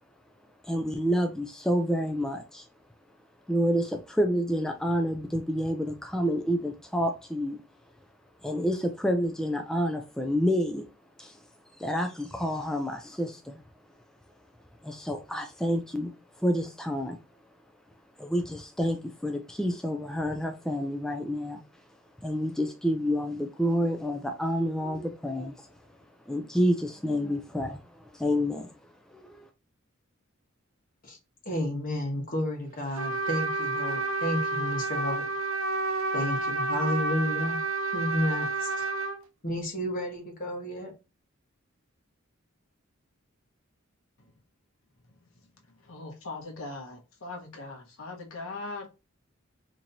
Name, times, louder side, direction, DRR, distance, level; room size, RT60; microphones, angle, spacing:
voice 1, 0.6-2.7 3.5-7.6 8.4-10.9 11.2-11.4 11.8-13.6 14.8-16.1 16.4-17.2 18.2-21.6 22.2-25.7 26.3-27.8 28.1-28.7 29.1-29.4, equal, 5° left, 0.3 m, -28 dB
voice 2, 31.4-35.2 36.1-37.6 37.9-38.9 39.4-40.9, left 1 dB, 40° left, 1.2 m, -31 dB
Trumpet, 33.0-39.2, right 2 dB, 75° right, 0.6 m, -30 dB
voice 3, 45.8-48.9, left 3 dB, 85° left, 1.1 m, -40 dB
4.2 x 2.9 x 2.6 m
head